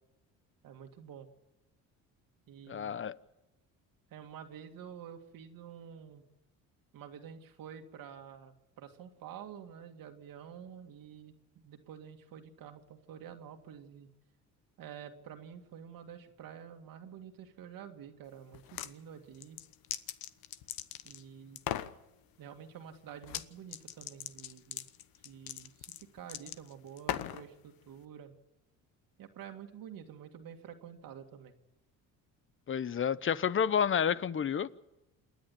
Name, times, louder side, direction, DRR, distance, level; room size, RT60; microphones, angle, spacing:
voice 1, 0.6-1.3 2.5-3.0 4.1-6.2 6.9-14.1 14.8-19.6 21.0-21.6 22.4-24.9 25.2-25.9 26.1-28.3 29.2-31.6, right 8 dB, 65° right, 2.1 m, -49 dB
voice 2, 2.7-3.2 32.7-34.7, left 8 dB, 35° left, 0.8 m, -30 dB
sound 1, 18.5-18.9 19.3-21.2 21.6-21.9 23.2-23.5 23.7-27.5, left 12 dB, 70° left, 1.1 m, -39 dB
28.0 x 10.5 x 9.7 m
cardioid pair, 90°, 36 cm